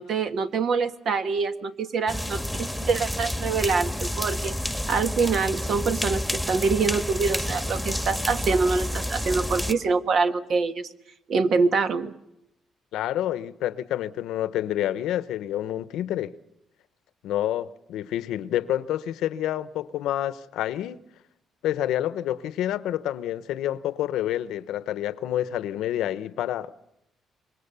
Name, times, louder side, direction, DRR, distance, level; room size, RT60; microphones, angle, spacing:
voice 1, 0.0-4.5 4.9-10.9 11.3-12.1, right 4 dB, 65° right, 1.5 m, -25 dB
sound 1, 2.1-9.7, left 1 dB, ahead, 1.7 m, -29 dB
voice 2, 12.9-16.3 17.2-21.0 21.6-26.7, left 12 dB, 85° left, 0.8 m, -28 dB
26.5 x 22.5 x 6.9 m
cardioid pair, 90°, 0 cm